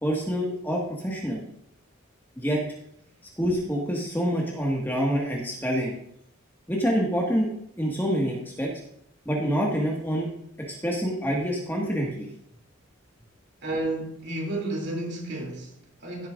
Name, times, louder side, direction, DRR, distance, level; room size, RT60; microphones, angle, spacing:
voice 1, 0.0-1.4 2.4-2.6 3.4-5.9 6.7-7.5 7.8-8.7 9.3-10.3 10.7-12.3, equal, 10° left, 1.8 m, -26 dB
voice 2, 13.6-16.3, right 2 dB, 50° right, 3.1 m, -32 dB
15.0 x 9.2 x 2.6 m
head